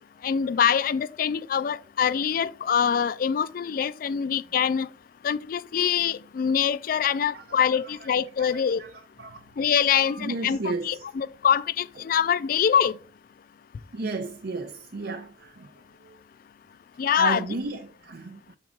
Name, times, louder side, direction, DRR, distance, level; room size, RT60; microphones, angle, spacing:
voice 1, 0.2-4.9 5.2-8.8 9.6-10.6 10.8-12.9 17.0-17.5, left 8 dB, 50° left, 0.3 m, -24 dB
voice 2, 8.4-8.9 9.2-9.6 10.1-11.1 12.0-12.1 13.9-15.7 16.0-16.2 17.2-18.6, right 3 dB, 60° right, 0.6 m, -34 dB
7.3 x 4.5 x 3.7 m
head